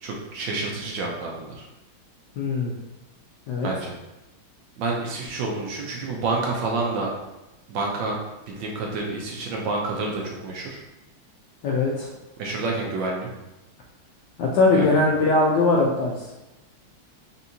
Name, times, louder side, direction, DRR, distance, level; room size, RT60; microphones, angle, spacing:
voice 1, 0.0-1.6 3.6-4.0 4.8-7.1 7.7-8.2 8.5-10.8 12.4-13.3 14.7-15.0, right 3 dB, 70° right, -1 dB, 1.2 m, -28 dB
voice 2, 2.4-2.7 3.5-3.7 11.6-12.1 14.4-16.1, left 3 dB, 75° left, -3 dB, 1.0 m, -20 dB
4.2 x 3.5 x 2.7 m, 0.97 s
omnidirectional pair, 2.3 m